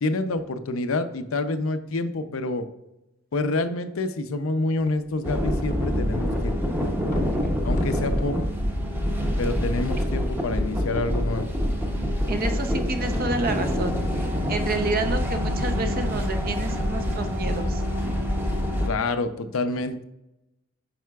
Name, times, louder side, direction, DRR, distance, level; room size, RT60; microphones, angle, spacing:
voice 1, 0.0-2.7 3.3-6.6 7.6-8.4 9.4-11.5 18.9-20.0, left 2 dB, 85° left, 10 dB, 0.6 m, -27 dB
sound 1, 4.8-6.3 6.6-6.7 7.1-9.6 10.3-10.4, left 1 dB, 40° left, 0.7 m, -34 dB
sound 2, 5.2-18.9, equal, 10° right, 0.8 m, -26 dB
voice 2, 12.3-17.8, right 2 dB, 45° right, 7 dB, 0.7 m, -29 dB
9.0 x 5.6 x 2.3 m, 0.95 s
head